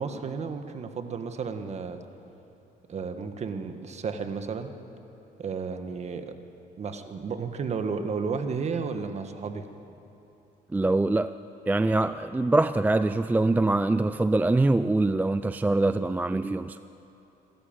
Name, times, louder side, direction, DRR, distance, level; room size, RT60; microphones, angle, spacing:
voice 1, 0.0-2.0 2.9-4.7 5.4-6.3 6.8-9.6, right 5 dB, 40° right, 7 dB, 1.6 m, -32 dB
voice 2, 10.7-11.3 11.7-16.8, right 2 dB, 10° right, 13 dB, 0.4 m, -24 dB
27.0 x 13.0 x 8.9 m, 3.0 s
cardioid pair, 110°, 17 cm